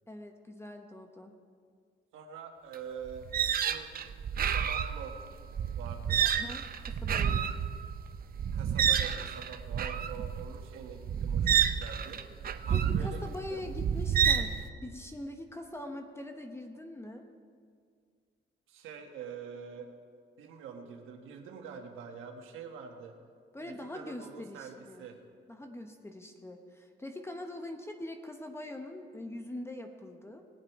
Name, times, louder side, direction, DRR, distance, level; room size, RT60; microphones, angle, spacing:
voice 1, 0.1-1.3 6.2-7.5 12.7-17.3 23.5-25.1 25.5-30.4, left 1 dB, 15° left, 5 dB, 1.0 m, -43 dB
voice 2, 2.1-3.3 3.6-3.9 4.3-5.2 5.8-6.2 8.5-12.2 12.6-13.2 13.5-13.7 18.7-19.9 20.4-23.1 23.6-25.2, right 7 dB, 90° right, 3 dB, 1.5 m, -45 dB
sound 1, 2.7-2.8 3.1-14.6, right 8 dB, 50° right, 0.6 m, -30 dB
19.5 x 7.6 x 4.7 m, 2.1 s
cardioid pair, 90°, 20 cm